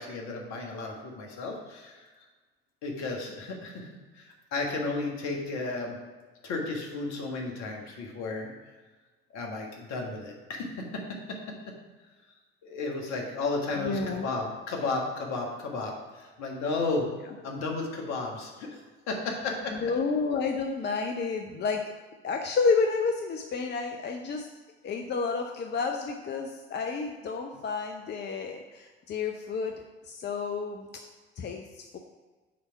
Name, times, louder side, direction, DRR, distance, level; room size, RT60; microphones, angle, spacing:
voice 1, 0.0-2.1 2.8-6.0 6.4-8.5 9.3-10.8 12.6-17.1 17.4-18.8 19.1-19.7, left 3 dB, 60° left, 1 dB, 1.7 m, -33 dB
voice 2, 13.8-14.3 19.7-21.9 22.2-24.5 24.8-30.9 31.4-32.0, left 4 dB, 35° left, 3 dB, 0.7 m, -30 dB
8.5 x 3.5 x 5.7 m, 1.3 s
hypercardioid pair, 60°, 31 cm